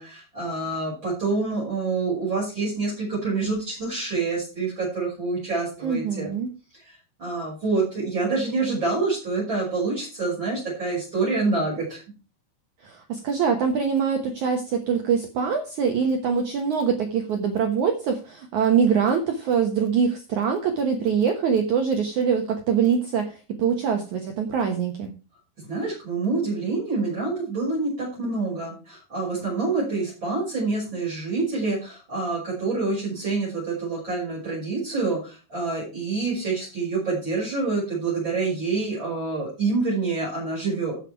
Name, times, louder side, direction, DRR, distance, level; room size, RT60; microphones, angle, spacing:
voice 1, 0.0-6.3 6.8-12.0 25.6-41.0, right 3 dB, 25° right, -6 dB, 6.6 m, -27 dB
voice 2, 5.8-6.5 12.8-25.1, right 6 dB, 70° right, 4 dB, 1.9 m, -24 dB
14.0 x 6.8 x 4.6 m, 0.34 s
omnidirectional pair, 5.0 m